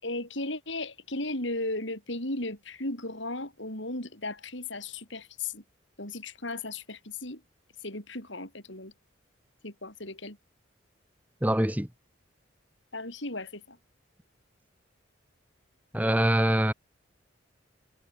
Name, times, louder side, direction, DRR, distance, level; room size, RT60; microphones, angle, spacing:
voice 1, 0.0-5.6 6.0-7.4 7.8-8.9 9.6-10.4 12.9-13.8, left 2 dB, 65° left, 7.0 m, -36 dB
voice 2, 11.4-11.9 15.9-16.7, right 1 dB, 10° right, 1.8 m, -24 dB
head